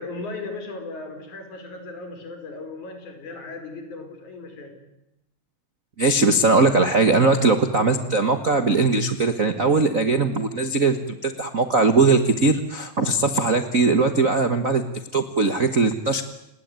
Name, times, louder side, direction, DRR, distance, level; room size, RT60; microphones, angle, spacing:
voice 1, 0.0-4.9, left 3 dB, 60° left, 6 dB, 5.8 m, -36 dB
voice 2, 6.0-14.8 15.1-16.2, right 3 dB, 65° right, 8 dB, 0.8 m, -20 dB
29.5 x 18.0 x 9.6 m, 0.87 s
omnidirectional pair, 3.9 m